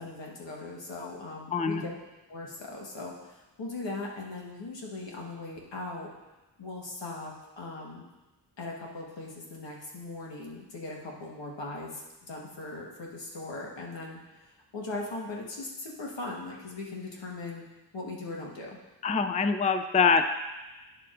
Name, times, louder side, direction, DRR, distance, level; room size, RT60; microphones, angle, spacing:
voice 1, 0.0-1.9 2.3-6.1 6.6-8.0 8.6-17.6 17.9-18.8, left 2 dB, 85° left, -2 dB, 1.5 m, -39 dB
voice 2, 1.5-1.8 19.0-20.3, left 5 dB, 20° left, 8 dB, 0.4 m, -24 dB
9.8 x 6.8 x 2.5 m, 1.1 s
cardioid pair, 65°, 43 cm